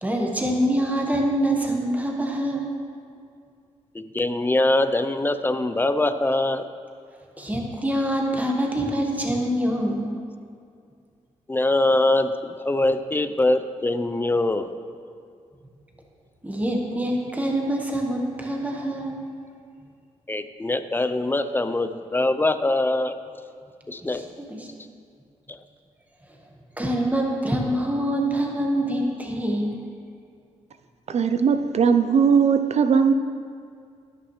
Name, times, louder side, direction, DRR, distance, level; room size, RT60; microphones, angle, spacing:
voice 1, 0.0-2.7 7.4-10.1 16.4-19.2 24.0-24.7 26.8-29.8, right 1 dB, 10° right, 0 dB, 1.4 m, -25 dB
voice 2, 3.9-6.7 11.5-12.3 12.6-14.8 20.3-23.1 23.9-24.2, left 2 dB, 15° left, 10 dB, 0.6 m, -23 dB
voice 3, 31.1-33.1, right 6 dB, 55° right, 9 dB, 0.5 m, -19 dB
17.5 x 6.0 x 3.2 m, 2.3 s
cardioid pair, 65°, 13 cm